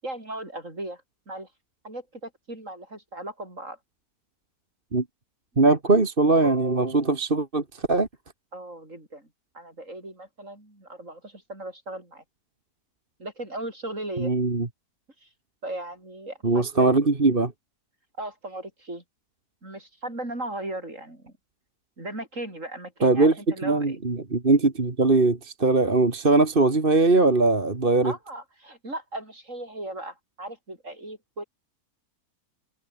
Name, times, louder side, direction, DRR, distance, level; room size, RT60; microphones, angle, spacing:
voice 1, 0.0-1.5 1.8-3.8 8.5-9.3 9.5-12.2 13.2-14.3 15.2-15.3 15.6-17.1 18.2-19.0 19.6-21.3 22.0-24.0 28.0-31.4, right 1 dB, 55° right, 8.3 m, -37 dB
voice 2, 5.6-8.1 14.2-14.7 16.4-17.5 23.0-23.3 23.6-28.1, right 3 dB, 35° right, 2.4 m, -21 dB
omnidirectional pair, 1.6 m